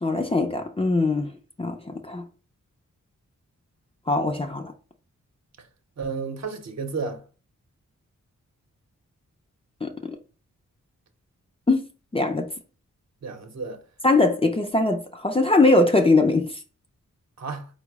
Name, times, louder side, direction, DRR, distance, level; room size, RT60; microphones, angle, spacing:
voice 1, 0.0-1.3 1.6-2.2 4.1-4.7 9.8-10.2 11.7-11.8 12.1-12.5 14.0-16.5, left 2 dB, 20° left, 0.4 m, -21 dB
voice 2, 6.0-7.2 13.2-13.8 17.4-17.7, right 4 dB, 60° right, 0.8 m, -32 dB
4.6 x 2.0 x 4.6 m
wide cardioid pair, 130°, 30 cm